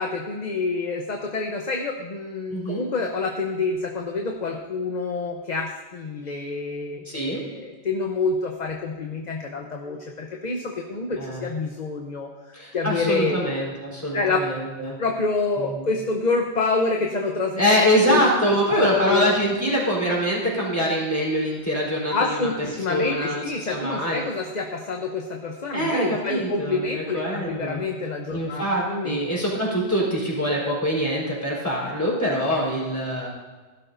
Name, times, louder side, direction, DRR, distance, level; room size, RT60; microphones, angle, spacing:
voice 1, 0.0-12.3 12.7-13.4 14.1-14.4 15.0-17.8 18.0-19.4 22.1-28.6 28.9-29.2, left 3 dB, 45° left, 1 dB, 1.0 m, -27 dB
voice 2, 2.5-2.8 7.0-7.4 11.2-11.5 12.5-14.9 15.7-15.8 17.6-22.5 22.9-24.2 25.7-27.8 28.3-33.3, equal, 15° left, -5 dB, 4.0 m, -24 dB
16.5 x 12.0 x 2.6 m, 1.3 s
omnidirectional pair, 1.1 m